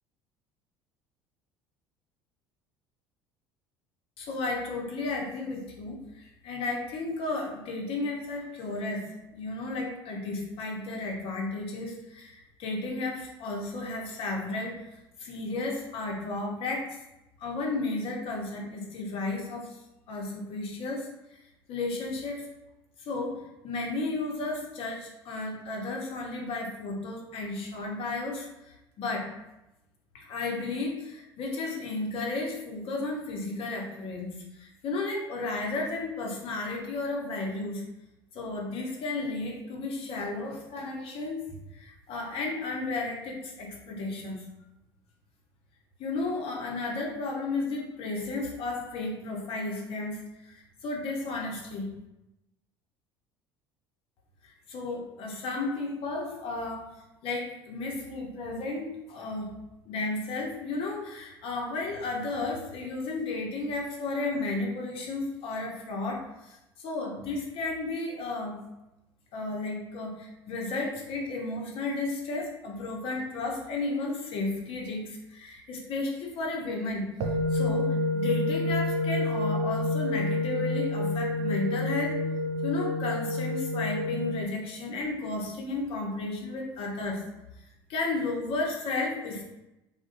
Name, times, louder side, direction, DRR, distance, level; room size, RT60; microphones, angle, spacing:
voice 1, 4.2-14.8 15.2-17.0 17.4-19.8 20.1-21.4 21.7-22.4 23.0-29.3 30.1-37.8 38.3-44.4 46.0-51.9 54.4-56.8 57.2-59.5 59.9-68.6 69.3-77.1 77.5-82.2 82.6-87.2 87.9-89.4, left 3 dB, 45° left, 0 dB, 0.7 m, -33 dB
sound 1, 77.2-84.4, left 2 dB, 60° right, 0.4 m, -28 dB
2.4 x 2.1 x 2.5 m, 0.93 s
figure-of-eight pair, 65°, 13 cm